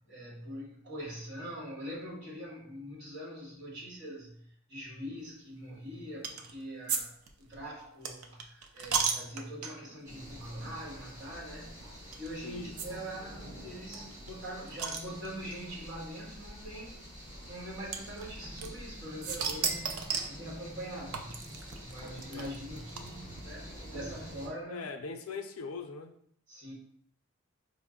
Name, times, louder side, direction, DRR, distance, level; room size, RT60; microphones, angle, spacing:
voice 1, 0.1-11.9 12.2-17.1 17.5-21.5 21.8-24.9 26.5-26.7, equal, 55° right, 1.4 m, -43 dB
sound 1, 6.2-6.5 6.9-7.0 7.3-10.0 10.6-10.7 11.0-11.1 12.1-12.3 12.8-12.9 13.1-13.2 13.4-13.5 13.9-15.6 16.5-16.6 17.9-18.9 19.2-20.4 21.1-23.4, right 6 dB, 85° right, 0.5 m, -34 dB
sound 2, 10.0-24.5, equal, 35° right, 1.3 m, -47 dB
voice 2, 12.4-12.8 22.3-22.5 24.7-26.1, left 4 dB, 85° left, 0.4 m, -40 dB
4.3 x 2.0 x 3.6 m
head